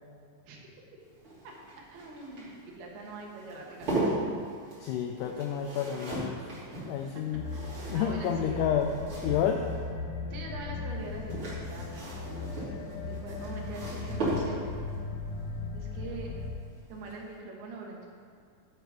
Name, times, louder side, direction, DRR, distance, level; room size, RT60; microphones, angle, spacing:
sound 1, 1.0-9.8 11.0-14.9 16.5-16.8 17.1-17.2, right 1 dB, 35° right, 3.7 m, -37 dB
voice 1, 1.4-4.1 7.0-8.7 10.3-12.0 12.8-14.7 15.7-16.4 16.9-18.1, right 3 dB, 85° right, -1 dB, 3.5 m, -43 dB
voice 2, 4.8-6.5 6.9-7.4 7.9-8.9 9.2-9.6, left 8 dB, 85° left, 3 dB, 1.8 m, -30 dB
sound 2, 7.3-16.5, left 3 dB, 65° left, 2.8 m, -37 dB
11.5 x 8.0 x 4.9 m, 2.3 s
omnidirectional pair, 4.3 m